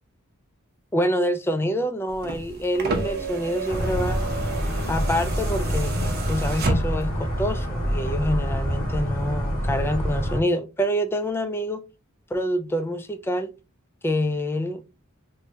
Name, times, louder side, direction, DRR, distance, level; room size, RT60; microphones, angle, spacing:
voice 1, 0.9-4.2 4.9-11.8 12.3-13.5 14.0-14.8, equal, 10° left, 0.3 m, -26 dB
sound 1, 2.1-7.2 8.4-8.5, right 3 dB, 45° right, 0.8 m, -31 dB
sound 2, 3.7-10.4, equal, 65° left, 1.5 m, -26 dB
3.4 x 3.0 x 2.6 m
head